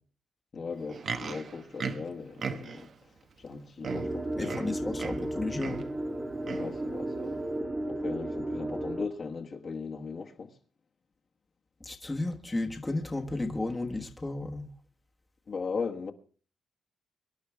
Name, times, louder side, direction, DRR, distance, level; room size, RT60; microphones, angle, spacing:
voice 1, 0.5-2.9 3.4-4.8 6.4-7.4 7.9-10.5 15.5-16.1, left 5 dB, 40° left, 1.5 m, -38 dB
Livestock farm animals working animals, 0.7-2.9 3.5-3.6 3.8-5.3 5.6-5.9 6.4-6.8 7.5-7.6, right 5 dB, 45° right, 1.2 m, -37 dB
sound 1, 3.9-9.0, right 1 dB, 20° right, 1.7 m, -34 dB
voice 2, 4.4-5.8 11.8-14.7, left 2 dB, 15° left, 1.4 m, -33 dB
24.5 x 11.5 x 3.5 m
cardioid pair, 140°, 0 cm